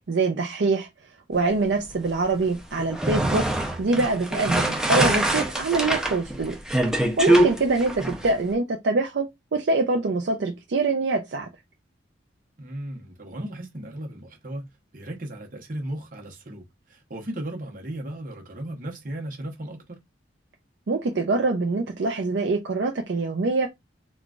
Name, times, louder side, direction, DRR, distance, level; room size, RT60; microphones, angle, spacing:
voice 1, 0.1-0.9 1.3-3.4 3.8-6.6 7.2-9.3 9.5-11.5 20.9-23.7, right 3 dB, 70° right, 0.5 m, -24 dB
sound 1, 2.8-8.3, right 1 dB, 5° right, 0.5 m, -23 dB
voice 2, 12.6-14.7 14.9-20.0, right 1 dB, 45° right, 0.9 m, -36 dB
3.8 x 2.3 x 2.3 m
head